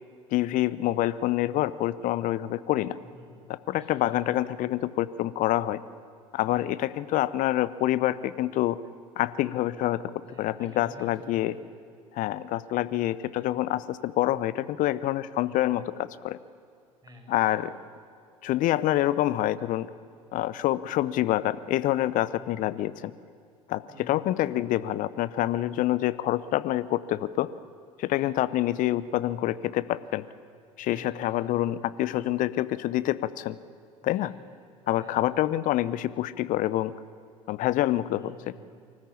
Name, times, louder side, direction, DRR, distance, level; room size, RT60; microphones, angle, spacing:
voice 1, 0.3-3.0 3.7-5.8 6.3-8.8 9.2-10.0 10.4-11.5 12.1-16.4 17.3-17.7 18.4-19.9 20.3-23.1 23.7-27.5 28.0-30.2 30.8-33.6 34.0-34.3 34.9-36.9 37.5-38.3, left 14 dB, 50° left, 16 dB, 0.7 m, -27 dB
voice 2, 3.0-3.4 3.7-4.3 6.5-6.8 10.2-11.6 15.4-15.8 17.0-17.7 22.3-22.7 23.9-24.2 28.1-28.5 30.9-31.5 34.0-34.4 35.0-35.3 38.2-38.7, left 1 dB, 20° right, -1 dB, 7.1 m, -51 dB
24.5 x 14.0 x 8.6 m, 2.2 s
figure-of-eight pair, 65°, 18 cm